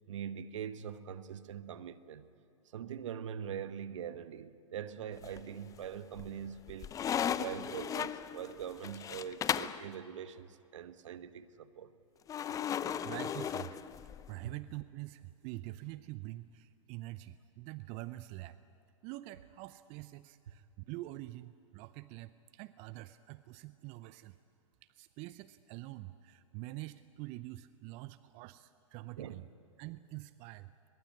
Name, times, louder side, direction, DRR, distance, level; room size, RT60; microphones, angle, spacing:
voice 1, 0.1-2.3 2.7-6.9 7.4-11.9 14.4-14.5 29.2-29.4, right 8 dB, 65° right, 1.2 m, -43 dB
sound 1, 5.2-5.8 6.2-9.8 12.3-14.3, left 9 dB, 20° left, 0.6 m, -36 dB
voice 2, 12.7-13.8 14.3-18.6 19.0-24.4 24.9-29.5 29.8-30.7, right 17 dB, 40° right, 0.7 m, -46 dB
22.0 x 22.0 x 9.7 m
hypercardioid pair, 105°, 17 cm